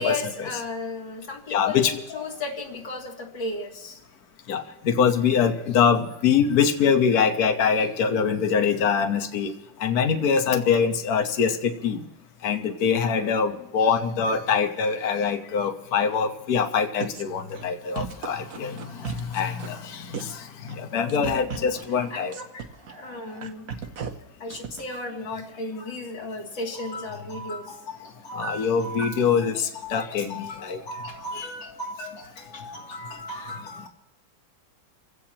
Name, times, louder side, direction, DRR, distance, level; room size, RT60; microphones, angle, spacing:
voice 1, 0.0-4.0 21.5-21.7 22.1-23.8 24.4-33.9, left 2 dB, 90° left, -4 dB, 3.3 m, -35 dB
voice 2, 1.5-2.0 4.5-9.5 9.8-12.0 12.4-22.3 28.3-30.8 31.3-31.5 33.3-33.5, left 6 dB, 55° left, 6 dB, 1.5 m, -24 dB
sound 1, 17.0-17.2 17.6-17.7 18.0-19.9 20.1-20.4 20.7-24.1 24.5-24.8, right 7 dB, 50° right, 1.4 m, -35 dB
29.5 x 16.5 x 2.9 m, 0.85 s
omnidirectional pair, 2.0 m